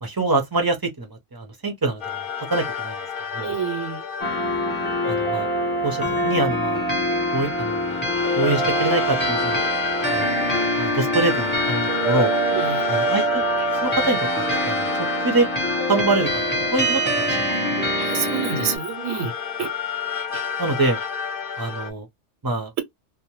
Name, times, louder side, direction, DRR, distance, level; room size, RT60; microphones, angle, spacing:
voice 1, 0.0-3.0 3.3-3.5 5.1-5.5 5.8-6.8 7.3-8.0 8.4-9.6 10.1-10.4 10.8-12.3 12.9-13.5 13.8-15.5 15.9-17.8 20.6-21.0 21.6-22.1 22.4-22.7, right 2 dB, 25° right, 0.5 m, -25 dB
sound 1, 2.0-6.2 7.1-17.6 18.1-21.9, left 6 dB, 55° left, 0.7 m, -31 dB
voice 2, 3.4-4.0 12.5-12.8 18.0-19.3 19.6-19.7 20.3-20.4, right 7 dB, 90° right, 1.0 m, -28 dB
sound 2, 4.2-18.8, equal, 10° left, 0.8 m, -24 dB
2.1 x 2.1 x 2.9 m
omnidirectional pair, 1.3 m